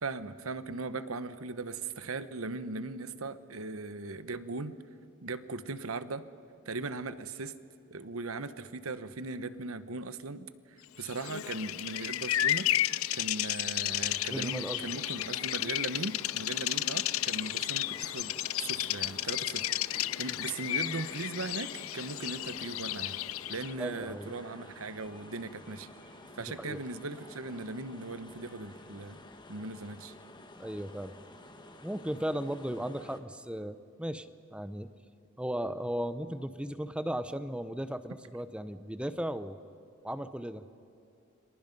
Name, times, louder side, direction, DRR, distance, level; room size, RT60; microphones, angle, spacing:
voice 1, 0.0-4.7 5.2-6.2 6.7-7.5 7.9-12.7 13.1-23.2 23.5-25.9 26.4-29.2 29.5-30.1, right 3 dB, 85° right, 13 dB, 1.1 m, -39 dB
Bird vocalization bird call bird song, 11.1-23.7, left 14 dB, 80° left, 0.5 m, -33 dB
sound 1, 13.9-33.2, left 2 dB, 20° left, 1.5 m, -52 dB
voice 2, 14.3-14.8 23.8-24.3 26.4-26.8 30.6-31.1 31.8-34.9 35.4-39.6 40.0-40.6, equal, 5° right, 12 dB, 0.7 m, -36 dB
sound 2, 15.8-28.9, right 1 dB, 45° right, 6.0 m, -61 dB
30.0 x 25.0 x 5.4 m, 2.6 s
head